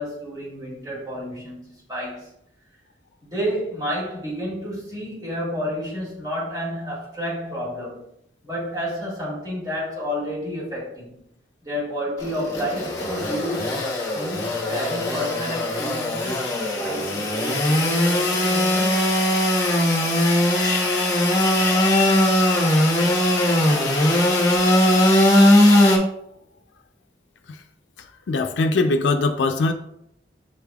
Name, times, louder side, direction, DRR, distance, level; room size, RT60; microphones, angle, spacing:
voice 1, 0.0-2.3 3.3-8.0 8.4-11.3 11.6-13.8 14.1-19.1, equal, 20° right, 1.8 m, -30 dB
Engine / Sawing, 12.2-26.0, left 1 dB, 20° left, 0.9 m, -19 dB
voice 2, 28.3-29.7, left 3 dB, 85° left, 0.4 m, -21 dB
6.8 x 3.3 x 2.3 m
head